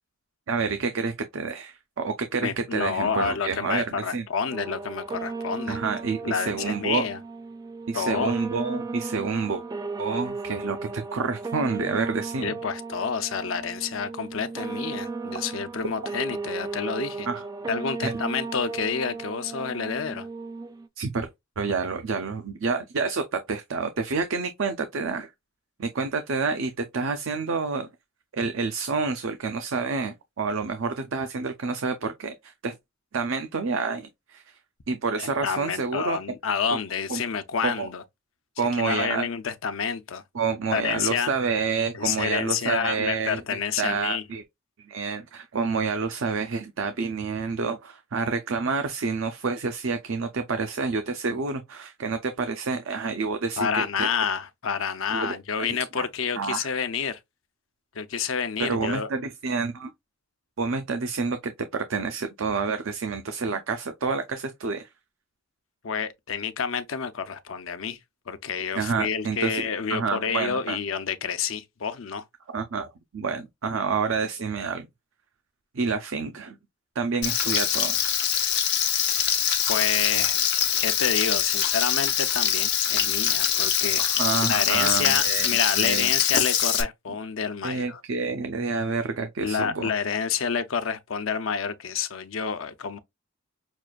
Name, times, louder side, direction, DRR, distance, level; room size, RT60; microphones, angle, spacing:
voice 1, 0.5-4.3 5.7-7.0 7.9-9.6 10.0-12.5 17.3-17.4 18.0-18.1 21.0-21.3 21.6-25.3 25.8-27.9 28.3-32.8 33.1-34.6 34.9-36.2 36.7-36.8 37.1-37.2 37.6-37.9 38.6-39.3 40.3-44.4 44.9-54.1 55.1-55.7 56.0-56.1 56.4-56.7 58.6-59.9 60.6-64.9 68.7-70.8 72.5-74.9 75.7-76.6 77.0-78.0 84.0-86.1 87.6-89.9, right 4 dB, 70° right, 0.6 m, -28 dB
voice 2, 2.4-5.8 6.2-7.2 7.9-8.3 12.4-17.3 17.7-20.3 35.2-38.0 38.8-40.2 40.7-41.3 41.9-44.2 53.6-57.2 57.9-59.1 65.8-68.0 68.3-72.2 79.7-80.4 80.8-88.0 89.4-93.0, left 6 dB, 70° left, 0.6 m, -29 dB
sound 1, 4.5-20.9, right 4 dB, 20° right, 0.3 m, -35 dB
Frying (food), 77.2-86.8, left 9 dB, 55° left, 1.0 m, -24 dB
6.0 x 2.5 x 2.3 m
head